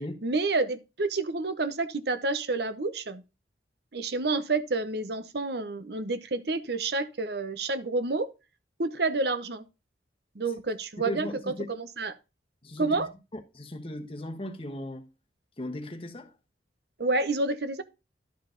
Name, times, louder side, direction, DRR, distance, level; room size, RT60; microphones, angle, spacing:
voice 1, 0.0-3.2 3.9-8.3 8.8-9.7 10.3-12.1 12.8-13.1 17.0-17.8, right 3 dB, 60° right, 0.8 m, -29 dB
voice 2, 11.0-11.7 12.6-15.1 15.6-16.3, left 1 dB, 30° left, 1.1 m, -37 dB
12.0 x 4.7 x 3.8 m
head